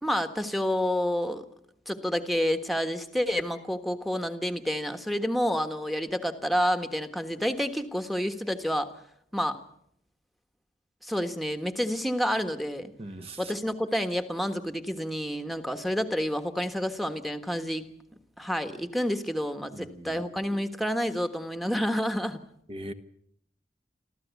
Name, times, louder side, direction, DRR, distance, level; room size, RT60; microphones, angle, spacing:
voice 1, 0.0-1.4 1.9-8.9 9.3-9.6 11.0-12.9 13.4-17.8 18.4-22.4, equal, ahead, 8 dB, 1.4 m, -29 dB
voice 2, 13.0-13.5 19.7-20.2 22.7-22.9, right 1 dB, 35° right, 8 dB, 1.2 m, -40 dB
26.0 x 14.5 x 8.3 m, 0.73 s
head